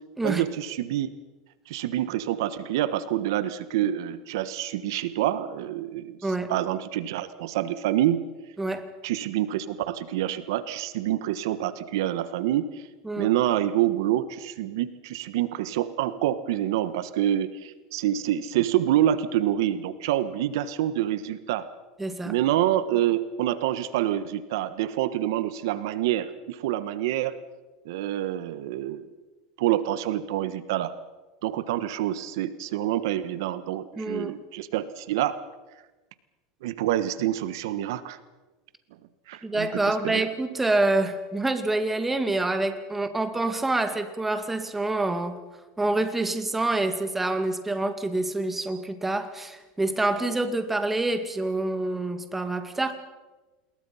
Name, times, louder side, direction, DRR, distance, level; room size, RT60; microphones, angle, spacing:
voice 1, 0.2-1.1 1.7-6.2 6.5-8.3 9.0-12.9 13.2-21.7 22.2-27.4 27.8-29.1 29.6-30.9 31.4-35.4 36.6-38.2 39.3-40.2, right 12 dB, 80° right, 14 dB, 1.3 m, -27 dB
voice 2, 8.6-8.9 13.0-13.3 22.0-22.3 34.0-34.3 39.4-45.4 45.8-52.9, right 2 dB, 10° right, 9 dB, 2.1 m, -27 dB
27.5 x 21.5 x 5.7 m, 1.2 s
supercardioid pair, 130°, 2 cm